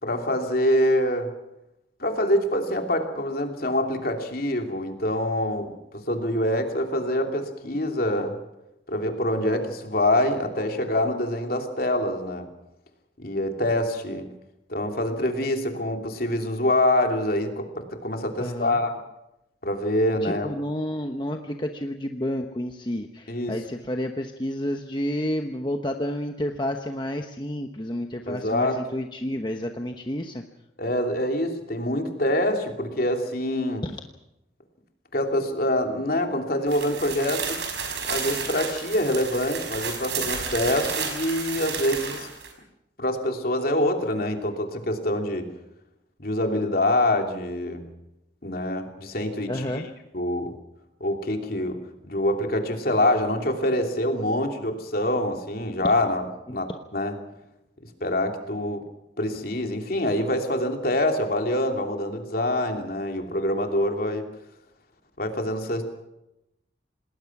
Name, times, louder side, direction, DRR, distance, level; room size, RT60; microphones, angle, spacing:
voice 1, 0.0-1.3 2.0-5.7 6.1-8.4 8.9-12.5 13.2-14.3 14.7-18.9 19.6-20.5 23.3-23.5 28.3-28.8 30.8-33.8 35.1-37.6 38.1-42.3 43.0-45.5 46.2-47.8 48.4-49.8 50.1-50.5 51.0-56.2 56.5-57.1 58.0-58.8 59.2-64.3 65.2-65.8, left 1 dB, 50° left, 4 dB, 3.0 m, -25 dB
voice 2, 18.4-18.8 20.2-30.4 33.8-33.9 49.5-49.9 56.5-56.6, left 1 dB, 25° left, 4 dB, 1.0 m, -30 dB
sound 1, 36.7-42.5, right 6 dB, 65° right, 5.4 m, -31 dB
27.5 x 19.5 x 6.1 m, 0.89 s
head